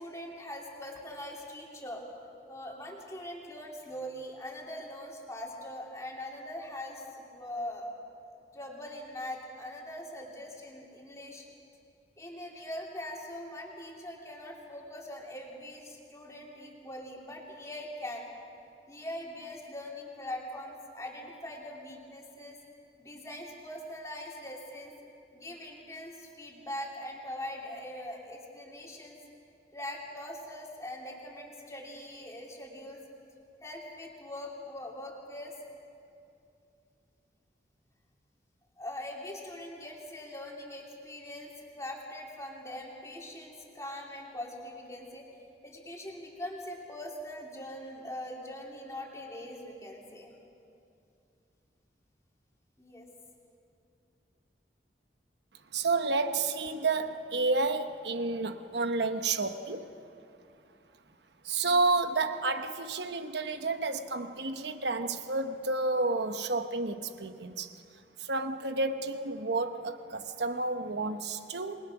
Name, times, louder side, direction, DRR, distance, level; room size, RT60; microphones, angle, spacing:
voice 1, 0.0-2.0 2.5-7.9 8.3-11.5 12.2-18.3 18.9-22.6 23.0-24.9 25.3-29.2 29.7-33.0 33.6-35.5 38.8-45.3 45.6-50.3 52.8-53.1, left 1 dB, 15° left, -1 dB, 2.9 m, -42 dB
voice 2, 55.7-59.9 61.4-67.8 68.2-71.8, right 3 dB, 75° right, 9 dB, 1.1 m, -30 dB
28.0 x 20.5 x 6.1 m, 2.6 s
head